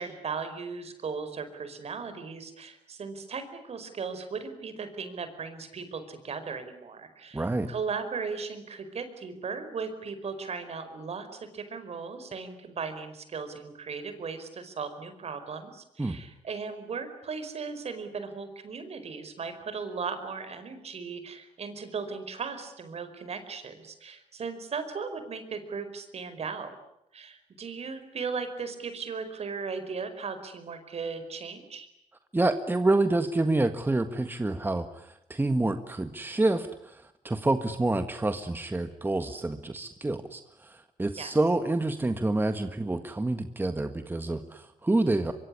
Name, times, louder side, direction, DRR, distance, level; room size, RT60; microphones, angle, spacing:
voice 1, 0.0-26.7 27.1-31.9 41.2-41.4, right 5 dB, 60° right, 10 dB, 5.0 m, -37 dB
voice 2, 7.3-7.7 16.0-16.2 32.3-45.3, right 2 dB, 15° right, 8 dB, 1.7 m, -28 dB
24.0 x 23.5 x 9.9 m, 0.79 s
cardioid pair, 85°, 12 cm